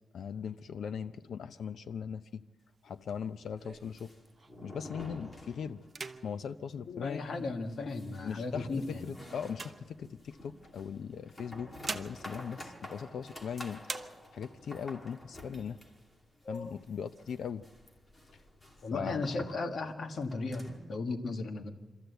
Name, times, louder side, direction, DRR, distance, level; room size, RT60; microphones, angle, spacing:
voice 1, 0.1-2.4 2.8-4.1 4.6-7.2 8.2-8.7 9.0-15.8 16.5-17.6 18.9-19.2, left 7 dB, 85° left, 10 dB, 0.6 m, -39 dB
sound 1, 2.6-4.8 5.2-5.5 5.8-7.7 8.4-10.6 11.4-13.5 13.8-14.7 15.1-15.2 15.5-16.2 16.6-17.5, right 4 dB, 35° right, 0.9 m, -46 dB
sound 2, 3.7-6.1 6.3-6.4 6.8-6.9 7.3-20.9, left 1 dB, 20° left, 2.4 m, -49 dB
voice 2, 6.9-9.0 16.4-16.8 18.8-21.7, left 3 dB, 65° left, 4 dB, 1.7 m, -36 dB
25.5 x 14.0 x 8.0 m, 1.3 s
wide cardioid pair, 150°, 0 cm